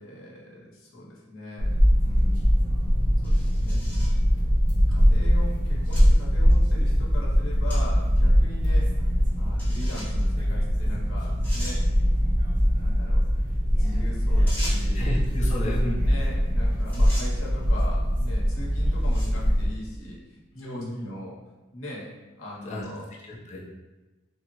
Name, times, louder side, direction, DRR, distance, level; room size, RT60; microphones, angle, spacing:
voice 1, 0.0-1.7 2.0-2.7 3.2-4.1 4.9-8.9 9.4-11.8 12.7-13.2 13.8-15.0 16.1-21.4 21.7-23.0, left 1 dB, 70° left, -4 dB, 0.9 m, -40 dB
sound 1, 1.6-19.7, equal, 40° right, 0.6 m, -22 dB
sound 2, 3.2-4.2 5.0-5.1 5.9-6.1 6.5-6.6 7.7-7.8 8.2-8.3 9.6-10.2 10.9-11.0 11.4-11.8 14.5-15.0 16.4-16.6 16.9-17.3 18.1-18.3 18.9-19.4, equal, 5° left, 1.0 m, -39 dB
voice 2, 14.9-16.1 20.5-21.1 22.6-22.9 23.2-23.6, left 1 dB, 35° left, -4 dB, 0.6 m, -32 dB
3.5 x 2.0 x 3.0 m, 1.1 s
head